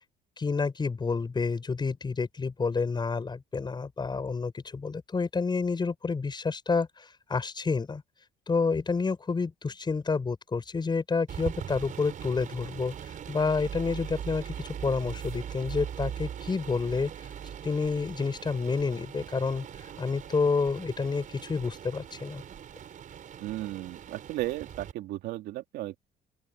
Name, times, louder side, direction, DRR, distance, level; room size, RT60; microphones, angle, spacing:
voice 1, 0.4-8.0 8.5-17.1 17.6-19.7 20.0-22.4, left 4 dB, 25° left, 6.7 m, -29 dB
sound 1, 11.3-24.9, right 9 dB, 50° right, 4.8 m, -41 dB
voice 2, 23.4-26.1, right 16 dB, 85° right, 2.7 m, -35 dB
open air
cardioid pair, 110°, 17 cm